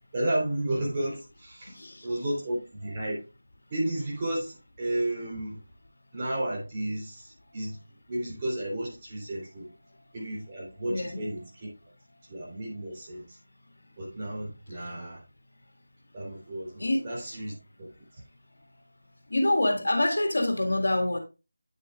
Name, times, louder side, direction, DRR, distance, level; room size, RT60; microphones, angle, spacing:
voice 1, 0.1-1.7 2.0-3.2 3.7-5.6 6.1-7.8 8.1-9.7 10.1-11.7 12.3-13.4 14.0-15.2 16.1-17.9, right 1 dB, 25° right, 3.7 m, -32 dB
voice 2, 1.7-2.2 10.9-11.2 14.7-14.9 16.8-17.1 19.3-21.2, left 1 dB, 70° left, 2.0 m, -26 dB
9.2 x 7.3 x 2.4 m
figure-of-eight pair, 165°, 0 cm